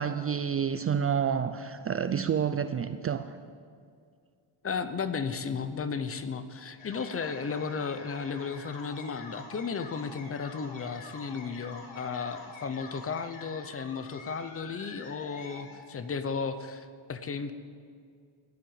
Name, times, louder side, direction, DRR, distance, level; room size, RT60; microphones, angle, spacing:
voice 1, 0.0-3.2, right 7 dB, 30° right, 11 dB, 0.4 m, -29 dB
voice 2, 4.6-17.5, left 5 dB, 30° left, 11 dB, 0.8 m, -34 dB
sound 1, 6.8-15.8, left 3 dB, 75° left, 3.6 m, -47 dB
14.5 x 11.0 x 8.9 m, 2.2 s
cardioid pair, 155°, 46 cm